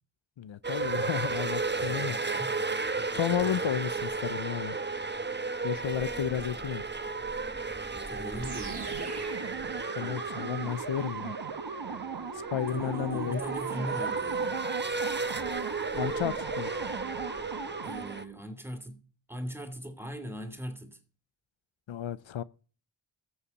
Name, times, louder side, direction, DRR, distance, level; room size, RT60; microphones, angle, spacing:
voice 1, 0.4-2.4 3.1-4.8 5.6-6.8 10.0-11.3 12.3-13.4 15.9-16.7 21.9-22.4, left 10 dB, 75° left, 0.7 m, -32 dB
sound 1, 0.6-18.2, right 4 dB, 25° right, 1.0 m, -34 dB
voice 2, 1.8-2.7 8.1-9.3 12.7-14.6 17.8-21.0, equal, 5° right, 3.1 m, -40 dB
sound 2, 8.4-18.3, right 5 dB, 55° right, 1.4 m, -38 dB
14.0 x 7.1 x 7.2 m
cardioid pair, 50°, 47 cm